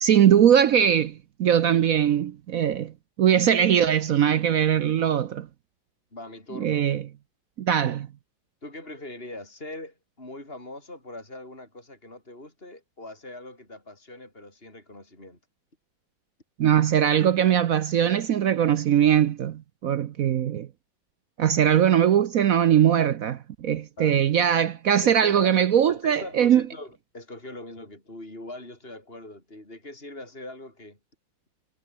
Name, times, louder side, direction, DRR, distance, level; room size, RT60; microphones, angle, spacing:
voice 1, 0.0-2.9 3.2-5.5 6.6-7.0 7.6-8.1 16.6-20.7 21.4-26.6, right 9 dB, 65° right, 0.9 m, -21 dB
voice 2, 6.1-6.8 8.6-15.4 24.0-24.2 25.0-25.6 25.9-31.0, left 2 dB, 25° left, 7.6 m, -41 dB
omnidirectional pair, 2.2 m